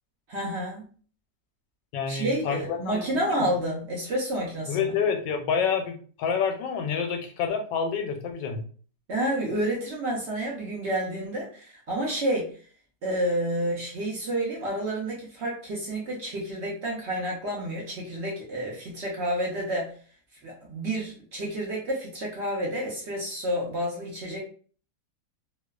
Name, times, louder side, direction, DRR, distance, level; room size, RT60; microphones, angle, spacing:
voice 1, 0.3-0.8 2.1-4.9 9.1-12.5 13.0-19.9 20.4-24.4, right 1 dB, 70° right, -3 dB, 0.6 m, -29 dB
voice 2, 1.9-3.5 4.7-8.6, left 6 dB, 85° left, 5 dB, 1.2 m, -28 dB
3.0 x 2.0 x 2.3 m, 0.43 s
omnidirectional pair, 1.9 m